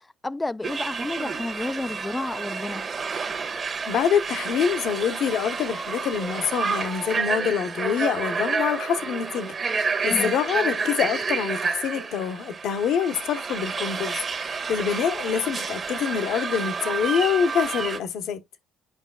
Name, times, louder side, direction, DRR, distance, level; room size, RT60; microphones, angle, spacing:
voice 1, 0.2-2.9 10.1-10.3, left 2 dB, 15° left, 0.3 m, -31 dB
sound 1, 0.6-18.0, right 5 dB, 40° right, 1.3 m, -29 dB
voice 2, 3.9-18.4, left 8 dB, 70° left, 1.1 m, -26 dB
8.2 x 5.1 x 2.3 m
cardioid pair, 90°, 0 cm